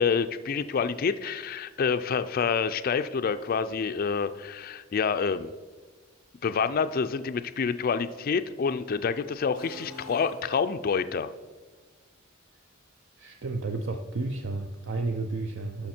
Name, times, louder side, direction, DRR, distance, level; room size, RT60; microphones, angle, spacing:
voice 1, 0.0-5.5 6.4-11.3, left 5 dB, 45° left, 10 dB, 0.3 m, -27 dB
sound 1, 9.5-11.1, left 1 dB, 35° right, 2.9 m, -45 dB
voice 2, 13.2-15.9, right 3 dB, 60° right, 6 dB, 0.5 m, -32 dB
12.5 x 5.8 x 4.3 m, 1.4 s
head